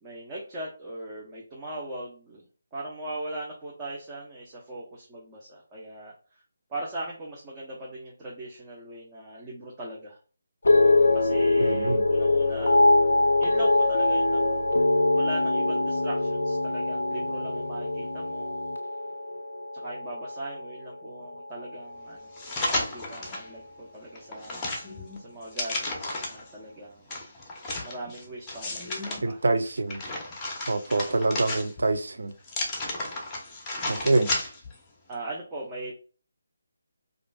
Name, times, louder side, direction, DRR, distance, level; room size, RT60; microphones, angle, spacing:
voice 1, 0.0-2.4 2.7-6.1 6.7-10.2 11.1-12.8 13.4-14.6 15.1-18.6 19.7-22.3 22.7-24.6 25.2-27.2 27.8-29.4 31.1-31.2 35.1-35.9, right 1 dB, 15° right, 0.8 m, -39 dB
sound 1, 10.6-21.0 21.3-21.9, left 2 dB, 70° left, 0.4 m, -23 dB
voice 2, 11.6-12.0 29.2-30.0 30.7-32.3 33.9-34.3, right 2 dB, 65° right, 0.4 m, -25 dB
sound 2, 22.4-23.5 23.9-26.5 27.1-29.2 29.7-32.0 32.4-34.8 35.1-35.2, left 2 dB, 15° left, 0.8 m, -33 dB
4.9 x 2.5 x 2.2 m
figure-of-eight pair, 155°, 0 cm